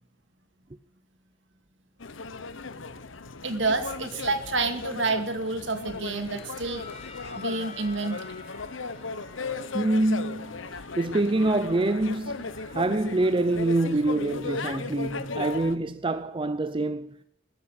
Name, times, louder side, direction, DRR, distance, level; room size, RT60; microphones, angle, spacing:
sound 1, 2.0-15.8, left 4 dB, 80° left, 1.0 m, -37 dB
voice 1, 3.4-6.8 7.3-8.2, right 3 dB, 65° right, 2.3 m, -28 dB
sound 2, 5.6-15.6, left 3 dB, 30° left, 4.9 m, -51 dB
voice 2, 9.7-10.6 11.0-17.2, right 2 dB, 25° right, 0.5 m, -26 dB
14.0 x 9.6 x 9.9 m
head